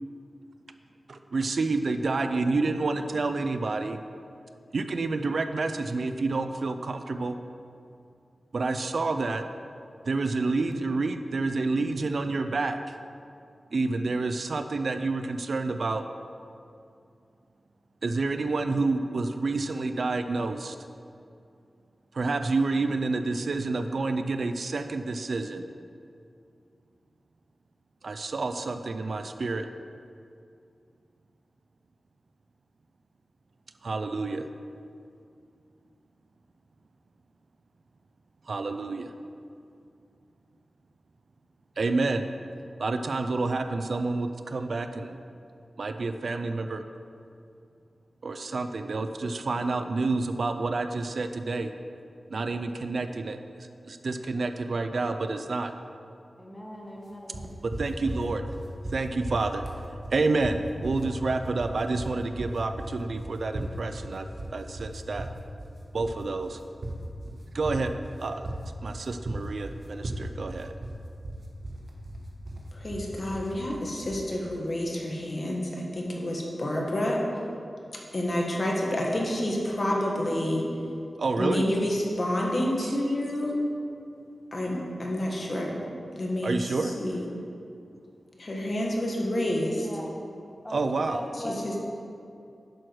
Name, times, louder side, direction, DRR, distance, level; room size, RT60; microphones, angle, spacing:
voice 1, 1.1-4.0 4.7-7.4 8.5-9.4 10.1-12.8 13.7-16.0 18.0-20.7 22.2-25.6 28.0-29.7 33.8-34.4 38.5-39.1 41.8-42.3 42.8-45.2 45.8-46.8 48.2-51.7 52.3-53.4 53.9-55.7 57.8-58.4 58.9-59.6 60.1-64.3 64.5-65.3 65.9-66.6 67.5-67.9 68.2-68.4 68.8-70.7 81.2-81.6 86.4-86.9 90.7-91.2, right 3 dB, 70° right, 8 dB, 0.5 m, -28 dB
voice 2, 56.4-57.5 89.7-90.1 90.6-91.8, equal, 10° left, -2 dB, 1.8 m, -39 dB
sound 1, 57.3-74.3, right 1 dB, 55° right, 1.4 m, -37 dB
voice 3, 72.7-77.2 78.1-80.6 81.3-83.6 84.5-85.8 86.1-87.3 88.4-89.9 91.4-91.7, left 1 dB, 50° left, -2 dB, 1.8 m, -29 dB
10.5 x 6.3 x 4.8 m, 2.5 s
cardioid pair, 55°, 0 cm